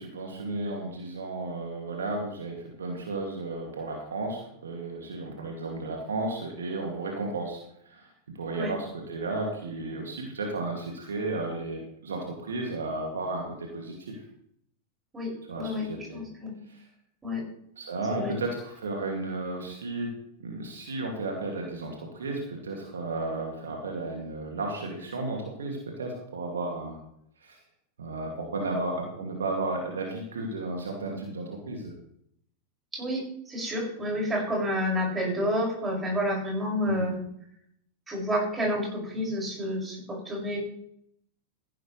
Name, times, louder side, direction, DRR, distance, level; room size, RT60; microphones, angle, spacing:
voice 1, 0.0-7.6 7.8-8.1 8.3-14.2 15.5-16.2 16.7-16.8 17.8-20.1 20.4-27.0 27.4-27.6 28.0-31.9 36.8-37.1, right 2 dB, 70° right, 0 dB, 2.4 m, -33 dB
voice 2, 15.1-15.8 16.1-16.6 17.2-17.4 18.1-18.4 32.9-37.2 38.1-40.6, equal, 15° right, -2 dB, 6.3 m, -30 dB
15.0 x 11.5 x 3.3 m, 0.72 s
figure-of-eight pair, 90°, 0 cm